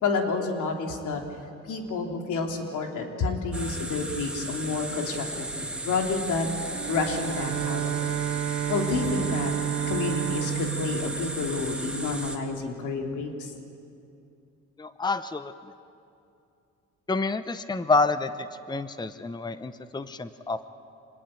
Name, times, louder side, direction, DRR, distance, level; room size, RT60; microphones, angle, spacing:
voice 1, 0.0-1.2 1.7-6.5 6.9-8.2 8.7-9.5 9.9-13.5, left 4 dB, 80° left, 2 dB, 3.1 m, -29 dB
sound 1, 3.5-12.4, right 1 dB, 5° right, 2.7 m, -35 dB
Bowed string instrument, 6.7-12.2, right 12 dB, 80° right, 0.7 m, -31 dB
voice 2, 14.8-15.5 17.1-18.3 18.7-20.7, left 3 dB, 15° left, 12 dB, 0.8 m, -28 dB
25.5 x 19.5 x 8.9 m, 2.5 s
cardioid pair, 90°, 30 cm